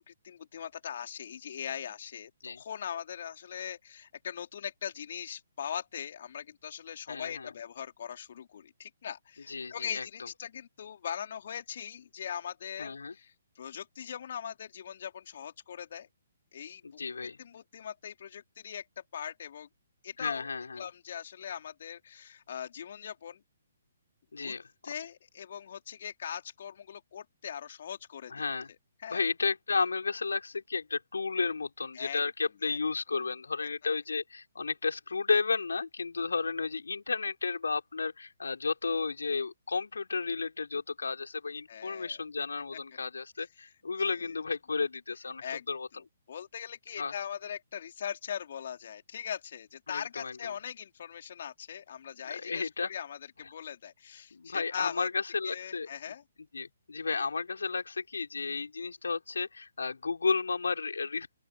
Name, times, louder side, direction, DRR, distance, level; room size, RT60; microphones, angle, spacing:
voice 1, 0.0-16.1 16.5-19.7 20.0-23.4 24.4-24.6 24.8-28.3 29.0-29.2 31.9-32.2 32.6-32.8 41.7-42.2 43.4-43.5 44.1-44.4 45.4-55.1 55.4-56.2, left 8 dB, 50° left, 3.9 m, -41 dB
voice 2, 7.1-7.5 9.5-10.1 12.8-13.2 16.8-17.4 20.2-20.8 24.3-24.9 28.3-28.7 29.1-45.9 47.0-47.1 49.9-50.4 52.3-52.9 54.3-55.9 56.5-61.3, left 4 dB, 70° left, 4.4 m, -33 dB
open air
figure-of-eight pair, 130°, 0 cm